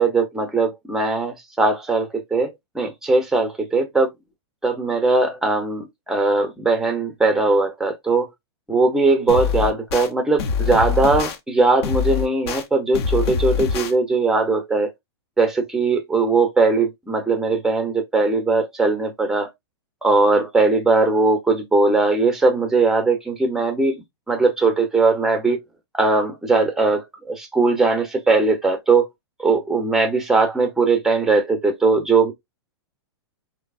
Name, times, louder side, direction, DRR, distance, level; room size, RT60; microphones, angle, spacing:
voice 1, 0.0-4.1 4.6-8.3 8.7-14.9 15.4-19.5 20.0-25.6 25.9-29.1 29.4-32.3, right 3 dB, 5° right, 0.6 m, -19 dB
sound 1, 9.3-10.1 10.4-11.4 11.8-12.6 12.9-13.9, left 6 dB, 70° left, 0.7 m, -24 dB
3.0 x 2.0 x 2.3 m
hypercardioid pair, 140°, 14 cm